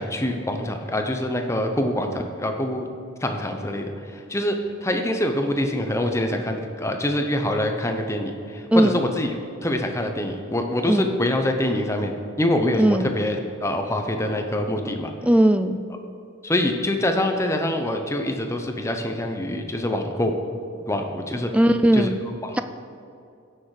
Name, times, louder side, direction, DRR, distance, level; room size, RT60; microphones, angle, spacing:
voice 1, 0.0-2.9 3.2-3.9 4.3-4.6 4.8-9.3 9.6-12.1 12.4-15.1 16.4-20.3 20.9-21.5 21.9-22.1 22.4-22.6, left 1 dB, 15° left, 4 dB, 0.8 m, -25 dB
voice 2, 8.7-9.0 10.9-11.1 12.8-13.1 15.2-15.8 21.5-22.2 22.5-22.6, right 1 dB, 5° right, 9 dB, 0.4 m, -18 dB
16.0 x 6.6 x 4.9 m, 2.6 s
head